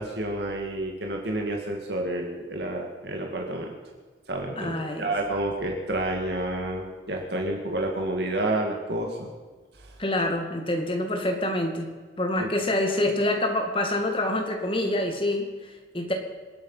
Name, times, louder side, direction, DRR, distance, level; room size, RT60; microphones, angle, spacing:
voice 1, 0.0-3.7 4.3-9.3 9.8-9.9 12.4-12.5, right 1 dB, 65° right, 1 dB, 2.0 m, -29 dB
voice 2, 4.6-5.1 10.0-11.9 12.2-16.1, left 1 dB, 30° left, 3 dB, 2.2 m, -26 dB
26.5 x 8.9 x 5.6 m, 1.4 s
head